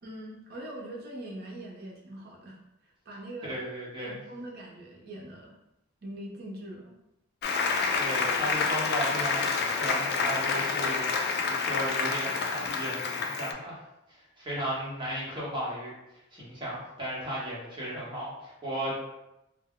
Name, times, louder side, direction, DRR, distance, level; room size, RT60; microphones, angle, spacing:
voice 1, 0.0-2.6 2.8-3.6 4.0-5.5 6.0-7.0, right 1 dB, 50° right, -2 dB, 0.7 m, -42 dB
voice 2, 3.4-4.1 8.0-13.8 14.1-15.9 16.3-19.0, equal, 25° right, -7 dB, 0.9 m, -35 dB
Applause, 7.4-13.5, left 4 dB, 55° left, 0.3 m, -28 dB
2.1 x 2.1 x 3.6 m, 0.90 s
head